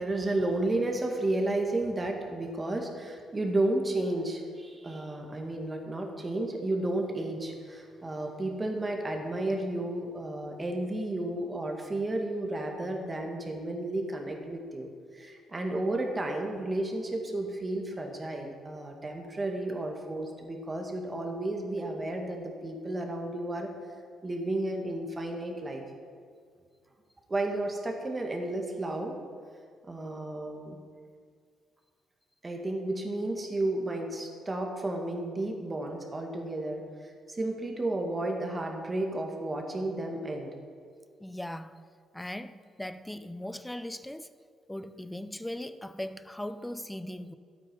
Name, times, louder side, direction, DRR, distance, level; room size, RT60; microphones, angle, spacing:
voice 1, 0.0-23.7 24.2-25.8 27.3-29.2 29.8-30.8 32.4-40.5, right 2 dB, 25° right, 1.9 m, -32 dB
voice 2, 41.2-41.8 42.1-44.3 44.7-47.3, left 1 dB, 5° left, 0.5 m, -39 dB
12.0 x 8.7 x 5.4 m
cardioid pair, 90°, 0 cm